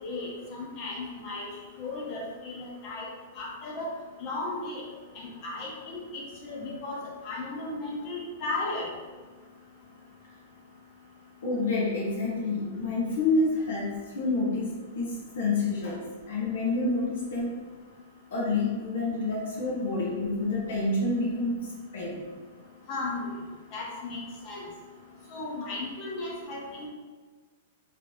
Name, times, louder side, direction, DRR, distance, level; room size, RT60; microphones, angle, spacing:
voice 1, 0.0-1.5 1.8-3.1 3.4-3.9 4.2-4.8 5.1-8.9 22.9-23.3 23.7-24.6 25.3-26.9, left 2 dB, 30° left, -3 dB, 0.8 m, -35 dB
voice 2, 11.4-17.6 18.3-22.2, left 3 dB, 80° left, -4 dB, 0.8 m, -28 dB
3.1 x 2.7 x 3.2 m, 1.4 s
supercardioid pair, 165°, 0 cm